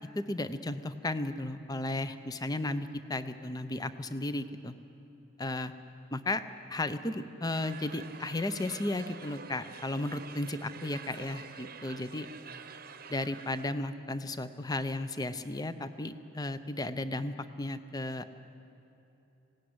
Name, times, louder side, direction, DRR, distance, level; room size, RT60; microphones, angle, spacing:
voice 1, 0.1-4.7 5.4-5.7 6.1-6.4 6.7-12.3 13.1-18.3, left 2 dB, 20° left, 11 dB, 0.7 m, -34 dB
sound 1, 7.5-13.7, right 6 dB, 50° right, 0.9 m, -47 dB
19.5 x 17.0 x 9.6 m, 2.9 s
head